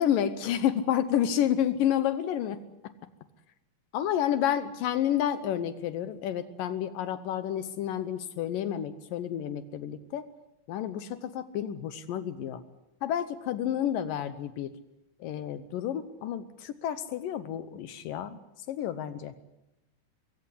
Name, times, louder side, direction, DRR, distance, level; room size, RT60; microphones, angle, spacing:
voice 1, 0.0-2.6 3.9-10.2 10.7-12.6 13.0-14.7 15.2-18.4 18.7-19.3, left 10 dB, 70° left, 13 dB, 2.4 m, -30 dB
22.5 x 16.5 x 9.8 m, 0.89 s
omnidirectional pair, 4.4 m